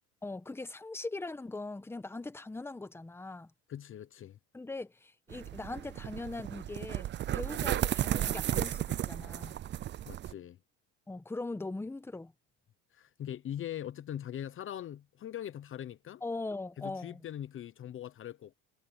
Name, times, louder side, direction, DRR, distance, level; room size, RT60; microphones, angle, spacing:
voice 1, 0.2-3.5 4.5-9.6 11.1-12.3 16.2-17.2, left 2 dB, 10° left, 1.1 m, -40 dB
voice 2, 3.7-4.4 10.1-10.6 12.9-16.2 16.8-18.6, left 11 dB, 40° left, 0.9 m, -41 dB
sound 1, 5.3-10.3, right 12 dB, 35° right, 0.5 m, -34 dB
cardioid pair, 115°, 32 cm